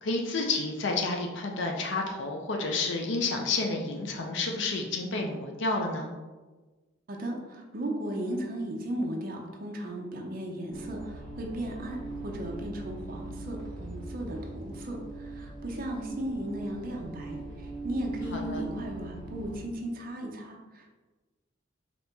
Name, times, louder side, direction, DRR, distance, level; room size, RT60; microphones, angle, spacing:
voice 1, 0.0-6.1 18.3-18.6, left 3 dB, 60° left, 2 dB, 0.5 m, -30 dB
voice 2, 7.1-21.0, right 1 dB, 45° right, 1 dB, 0.6 m, -36 dB
sound 1, 10.7-19.6, right 2 dB, 5° left, 1.1 m, -40 dB
4.2 x 2.9 x 3.4 m, 1.2 s
head